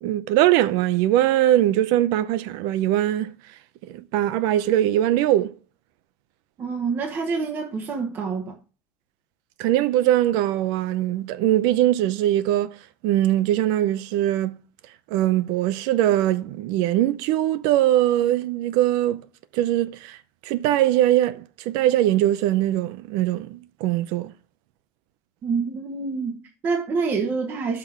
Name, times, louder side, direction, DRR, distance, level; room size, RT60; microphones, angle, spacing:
voice 1, 0.0-3.4 3.8-5.6 9.6-12.8 13.0-14.5 15.1-19.3 19.5-20.2 20.4-24.3, right 13 dB, 55° right, 0.6 m, -21 dB
voice 2, 6.6-8.5 25.4-27.8, right 5 dB, 25° right, 1.0 m, -27 dB
6.5 x 5.9 x 7.1 m
cardioid pair, 180°, 8 cm